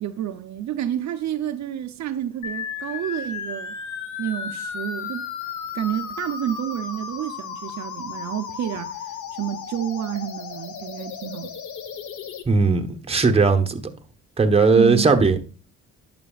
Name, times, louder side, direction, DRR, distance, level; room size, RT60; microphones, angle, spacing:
voice 1, 0.0-3.7 4.2-5.3 5.7-9.1 9.4-11.6 14.7-15.1, right 11 dB, 65° right, 0.7 m, -29 dB
sound 1, 2.4-12.4, left 6 dB, 75° left, 1.1 m, -34 dB
voice 2, 12.5-13.9 14.4-15.4, right 4 dB, 20° right, 1.0 m, -18 dB
11.0 x 6.1 x 2.4 m
cardioid pair, 90°, 30 cm